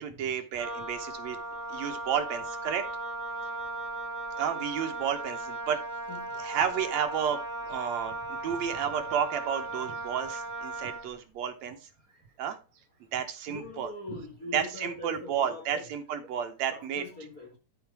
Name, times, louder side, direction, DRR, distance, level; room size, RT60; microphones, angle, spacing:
voice 1, 0.0-1.4 1.7-2.8 4.4-5.8 6.4-11.8 12.4-12.6 13.1-14.2 14.5-17.0, right 8 dB, 70° right, 2.2 m, -32 dB
Wind instrument woodwind instrument, 0.5-11.1, right 2 dB, 10° left, 1.3 m, -37 dB
voice 2, 13.5-15.9 16.7-17.6, left 2 dB, 45° left, 1.1 m, -42 dB
12.0 x 4.5 x 4.7 m
omnidirectional pair, 3.4 m